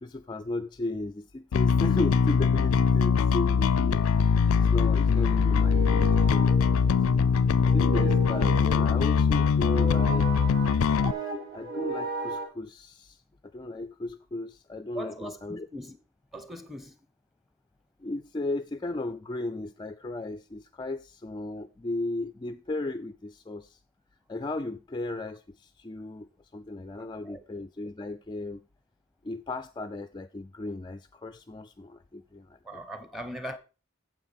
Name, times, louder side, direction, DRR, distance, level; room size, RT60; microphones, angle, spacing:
voice 1, 0.0-7.3 7.6-10.3 11.5-15.7 18.0-23.8 24.3-28.6 29.2-32.6, left 2 dB, 20° left, 0.4 m, -35 dB
Bass guitar, 1.5-11.1, left 6 dB, 85° left, 0.4 m, -22 dB
sound 1, 4.5-12.5, right 2 dB, 45° right, 2.9 m, -36 dB
voice 2, 14.9-16.0 16.3-16.9 27.0-27.4 32.6-33.6, equal, ahead, 1.0 m, -40 dB
9.0 x 7.6 x 4.2 m
head